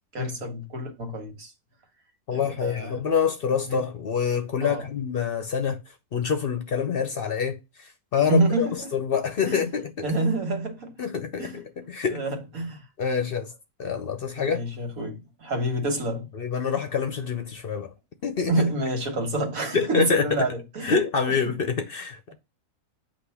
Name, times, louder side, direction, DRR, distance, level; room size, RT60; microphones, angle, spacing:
voice 1, 0.1-1.5 2.3-3.0 3.7-3.8 4.6-4.9 8.2-8.9 9.4-9.7 10.0-10.9 11.4-11.6 12.1-12.8 14.4-16.3 18.5-21.0 21.3-21.5, right 2 dB, 85° right, 1.8 m, -28 dB
voice 2, 2.3-5.8 6.1-7.6 8.1-8.7 8.9-10.1 11.0-12.2 13.0-13.5 13.8-14.6 16.4-17.9 18.2-18.5 19.7-20.3 20.8-22.3, left 6 dB, 55° left, 0.7 m, -26 dB
8.3 x 2.8 x 5.7 m
omnidirectional pair, 1.4 m